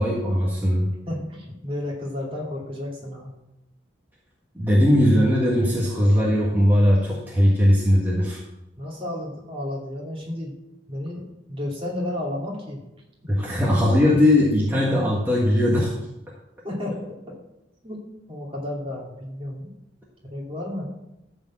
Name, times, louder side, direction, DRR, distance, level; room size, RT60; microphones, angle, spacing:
voice 1, 0.0-0.9 4.5-8.4 13.3-15.9, left 1 dB, 10° right, -5 dB, 1.6 m, -19 dB
voice 2, 1.1-3.3 8.8-10.6 10.9-12.8 13.2-13.4 16.6-17.4 17.8-18.0 18.3-19.7 20.2-20.8, left 1 dB, 30° right, -2 dB, 2.7 m, -32 dB
13.5 x 4.5 x 7.4 m, 0.91 s
head